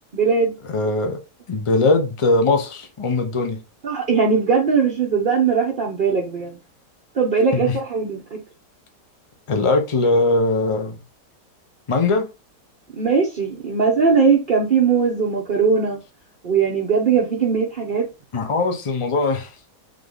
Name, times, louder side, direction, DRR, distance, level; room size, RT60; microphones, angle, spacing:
voice 1, 0.1-0.5 3.8-6.5 7.2-8.4 13.0-16.0 16.4-18.1, right 5 dB, 45° right, 0.7 m, -19 dB
voice 2, 0.7-1.2 1.5-3.6 7.5-7.8 9.5-11.0 11.9-12.3 18.3-19.5, left 3 dB, 50° left, 0.3 m, -20 dB
3.8 x 3.3 x 3.8 m
omnidirectional pair, 1.8 m